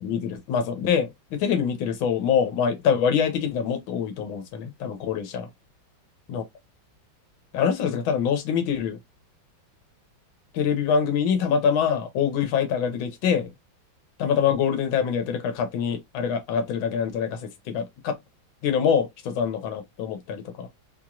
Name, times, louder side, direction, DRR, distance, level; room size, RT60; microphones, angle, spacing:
voice 1, 0.0-5.5 6.3-6.4 7.5-9.0 10.5-13.5 14.2-18.1 18.6-20.7, left 7 dB, 85° left, 1.6 m, -25 dB
4.3 x 3.0 x 2.3 m
omnidirectional pair, 2.1 m